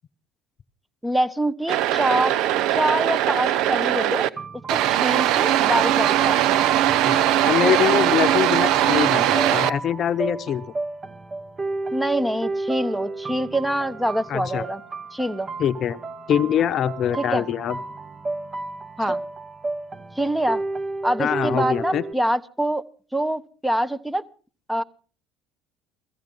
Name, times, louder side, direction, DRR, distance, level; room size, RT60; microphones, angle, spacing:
voice 1, 1.0-2.4 2.7-4.3 4.7-6.6 11.9-14.8 15.1-15.5 17.2-17.4 19.0-19.2 20.2-20.6 21.0-22.8 23.1-24.2 24.7-24.8, right 1 dB, 5° right, 13 dB, 1.0 m, -25 dB
sound 1, 1.7-4.3 4.7-9.7, right 12 dB, 65° right, 0.7 m, -20 dB
sound 2, 4.4-22.1, right 3 dB, 30° right, 1.7 m, -33 dB
voice 2, 7.0-10.6 14.3-14.6 15.6-16.0 16.3-17.8 21.2-22.0, left 9 dB, 50° left, 14 dB, 0.8 m, -23 dB
16.5 x 14.5 x 5.5 m, 0.40 s
hypercardioid pair, 75°, 0 cm